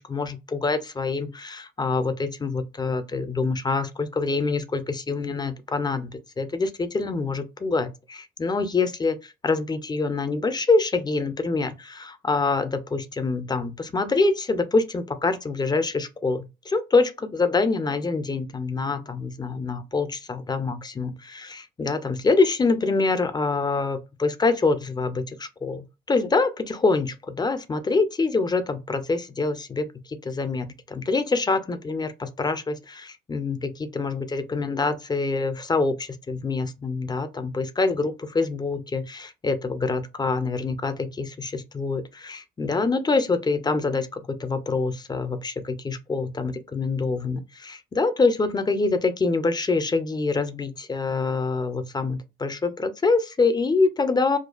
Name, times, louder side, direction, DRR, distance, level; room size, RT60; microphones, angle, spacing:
voice 1, 0.0-54.4, left 3 dB, 20° left, 0.4 m, -25 dB
2.4 x 2.2 x 2.3 m
cardioid pair, 90°, 20 cm